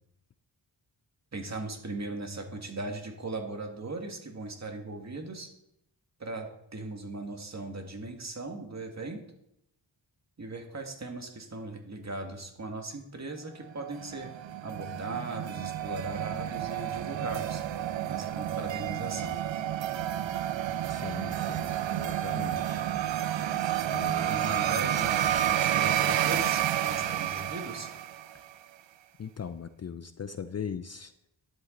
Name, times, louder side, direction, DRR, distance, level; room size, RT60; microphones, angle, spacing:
voice 1, 1.3-5.5 6.2-9.2 10.4-14.3 14.6-17.6 18.1-19.4 24.2-27.9, right 2 dB, 35° right, 4 dB, 1.9 m, -38 dB
sound 1, 13.8-28.5, right 11 dB, 90° right, 0.7 m, -30 dB
voice 2, 20.9-22.9 23.9-24.5 28.3-28.4 29.2-31.1, left 7 dB, 35° left, 11 dB, 0.5 m, -40 dB
11.5 x 8.3 x 3.9 m, 0.80 s
cardioid pair, 75°, 44 cm